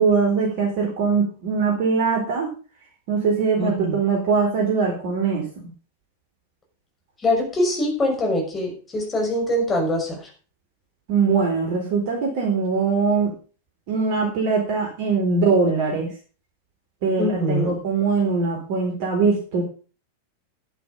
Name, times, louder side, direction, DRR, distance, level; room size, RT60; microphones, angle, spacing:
voice 1, 0.0-2.5 3.1-5.7 11.1-13.3 13.9-16.1 17.0-19.6, right 4 dB, 50° right, 0 dB, 4.1 m, -21 dB
voice 2, 3.6-4.0 7.2-10.2 17.2-17.7, left 1 dB, 20° left, 0 dB, 6.3 m, -23 dB
11.5 x 10.5 x 5.4 m, 0.38 s
figure-of-eight pair, 90°, 0 cm